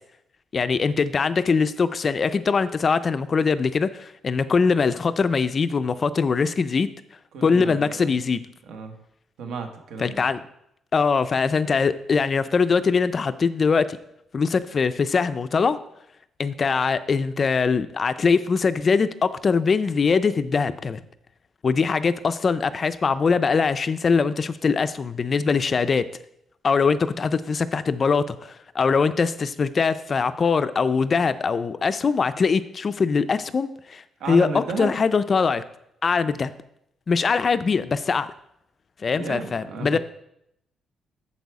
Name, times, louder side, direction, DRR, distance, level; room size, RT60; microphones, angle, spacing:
voice 1, 0.5-6.9 7.4-8.4 10.0-10.4 10.9-14.0 14.3-15.8 16.4-21.0 21.6-26.0 26.6-34.0 34.3-35.6 36.0-36.5 37.1-38.3 39.0-40.0, left 5 dB, 30° left, 13 dB, 0.3 m, -22 dB
voice 2, 7.3-8.2 8.7-9.0 9.4-10.3 34.2-34.9 39.1-40.0, right 4 dB, 80° right, 5 dB, 1.3 m, -33 dB
8.1 x 7.3 x 4.7 m, 0.77 s
cardioid pair, 180°, 0 cm